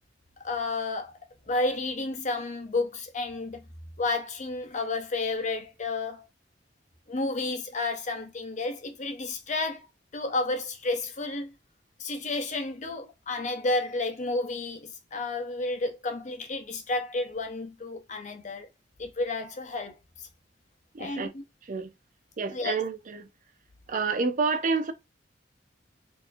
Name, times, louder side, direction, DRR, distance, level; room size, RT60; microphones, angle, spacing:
voice 1, 0.4-1.1 1.5-3.6 4.0-6.3 7.1-9.9 10.1-11.5 12.0-18.7 19.0-20.0 21.0-21.4 22.5-22.8, left 2 dB, 40° left, 0.8 m, -31 dB
voice 2, 20.9-21.3 21.7-21.9 22.4-23.3 23.9-24.9, right 4 dB, 45° right, 0.5 m, -28 dB
4.4 x 2.8 x 2.5 m
head